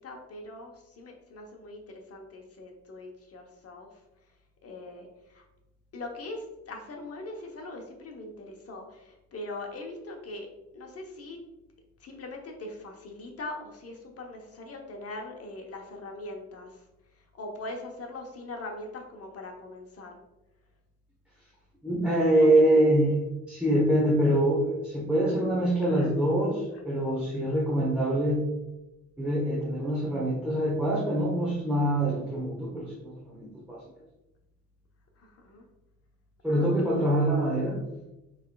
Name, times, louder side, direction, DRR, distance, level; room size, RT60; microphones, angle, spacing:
voice 1, 0.0-3.9 4.6-5.4 5.9-10.5 10.7-11.4 12.0-16.8 17.1-20.2 22.4-23.1 25.9-26.1 35.2-35.6 36.6-37.2, left 2 dB, 50° left, 2 dB, 1.0 m, -41 dB
voice 2, 21.8-23.1 23.5-28.5 29.2-33.8 36.4-37.8, right 1 dB, 5° right, -5 dB, 1.1 m, -25 dB
6.4 x 3.3 x 2.3 m, 0.97 s
cardioid pair, 90°, 30 cm